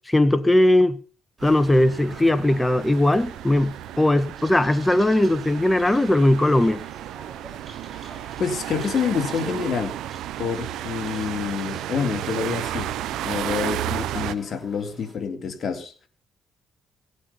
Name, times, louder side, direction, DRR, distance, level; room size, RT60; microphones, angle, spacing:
voice 1, 0.1-1.0 1.4-6.8, left 1 dB, 10° left, 1.3 m, -19 dB
sound 1, 1.4-15.1, right 2 dB, 30° right, 7.7 m, -47 dB
sound 2, 1.4-14.3, right 12 dB, 85° right, 0.7 m, -33 dB
voice 2, 8.4-9.9 10.4-12.9 13.2-15.9, left 6 dB, 50° left, 3.0 m, -27 dB
17.5 x 8.6 x 5.8 m
cardioid pair, 90°, 0 cm